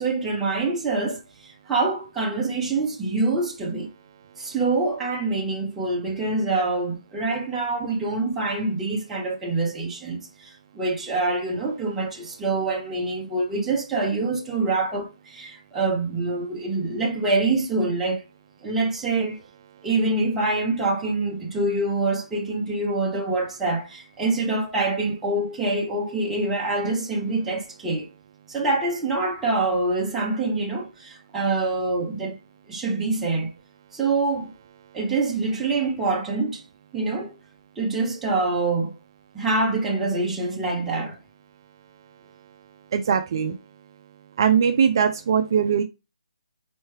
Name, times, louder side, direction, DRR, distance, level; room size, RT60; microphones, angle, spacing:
voice 1, 0.0-3.9 4.4-18.2 18.6-19.4 19.8-28.1 28.5-32.4 32.7-33.5 33.9-34.5 34.9-36.6 36.9-37.3 37.8-38.9 39.3-41.2, right 3 dB, 5° right, 0.8 m, -25 dB
voice 2, 42.9-43.6 44.4-45.8, right 7 dB, 35° right, 0.4 m, -20 dB
4.4 x 3.1 x 3.1 m
hypercardioid pair, 165°, 4 cm